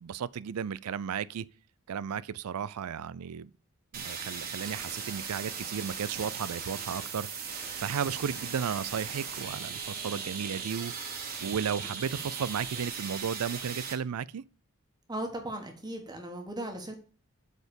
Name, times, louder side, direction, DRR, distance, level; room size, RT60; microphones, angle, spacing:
voice 1, 0.0-1.5 1.9-3.5 3.9-7.3 7.8-10.9 11.4-14.4, right 7 dB, 85° right, 0.4 m, -34 dB
sound 1, 3.9-13.9, right 6 dB, 40° right, 1.6 m, -38 dB
voice 2, 15.1-16.9, right 1 dB, 20° right, 1.5 m, -37 dB
8.2 x 4.3 x 7.0 m
head